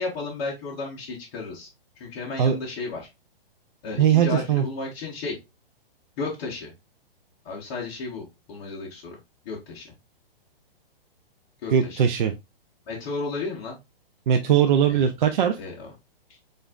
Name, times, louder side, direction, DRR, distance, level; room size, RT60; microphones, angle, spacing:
voice 1, 0.0-1.7 2.0-3.1 3.8-5.4 6.2-6.7 7.4-9.2 9.4-9.9 11.6-12.0 12.9-13.8 14.9-15.0 15.6-15.9 16.3-16.4, left 3 dB, 30° left, -4 dB, 0.9 m, -33 dB
voice 2, 4.0-4.6 11.7-12.3 14.3-15.6, right 9 dB, 50° right, 5 dB, 0.5 m, -20 dB
7.0 x 2.6 x 2.3 m, 0.23 s
hypercardioid pair, 160°, 30 cm